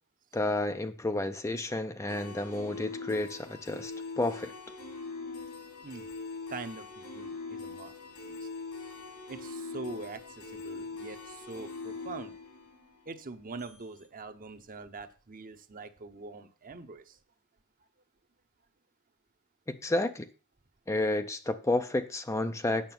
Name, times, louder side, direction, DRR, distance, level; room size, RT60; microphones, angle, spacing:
voice 1, 0.3-4.5 19.7-20.3 20.9-22.9, left 2 dB, 15° left, 0.4 m, -31 dB
sound 1, 2.1-13.8, left 3 dB, 80° left, 2.8 m, -42 dB
voice 2, 6.5-7.9 8.3-8.5 9.3-12.3 13.1-17.2, right 3 dB, 40° right, 0.9 m, -43 dB
8.9 x 6.7 x 5.9 m
head